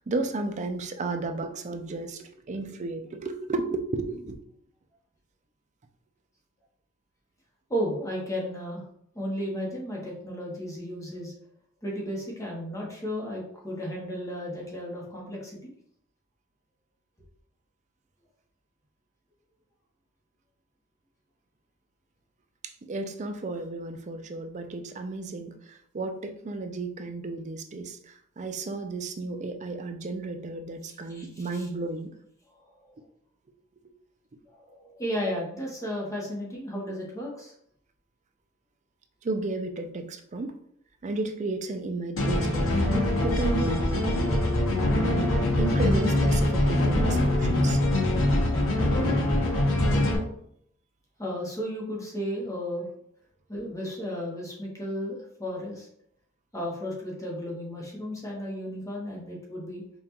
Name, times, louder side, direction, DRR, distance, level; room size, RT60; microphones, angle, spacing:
voice 1, 0.0-4.4 22.6-32.1 39.2-40.5 41.0-42.8 43.2-43.8 44.2-44.3 45.6-47.8, right 2 dB, 35° right, 6 dB, 0.4 m, -33 dB
voice 2, 7.7-8.8 9.1-11.3 11.8-15.7 31.1-31.3 31.5-31.7 32.6-32.8 34.6-37.5 51.2-52.9 53.5-55.9 56.5-59.8, equal, 15° left, -3 dB, 0.9 m, -34 dB
sound 1, 42.2-50.2, left 1 dB, 90° left, 1.0 m, -23 dB
5.3 x 2.4 x 2.9 m, 0.68 s
head